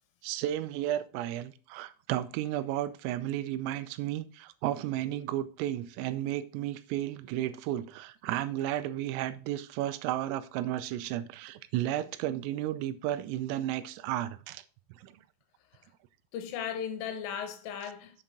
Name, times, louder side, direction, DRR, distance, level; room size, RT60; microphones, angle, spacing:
voice 1, 0.2-14.6 14.9-15.1, right 13 dB, 85° right, 3.3 m, -33 dB
voice 2, 16.3-18.2, left 8 dB, 80° left, 3.7 m, -36 dB
7.9 x 7.3 x 3.7 m
omnidirectional pair, 5.8 m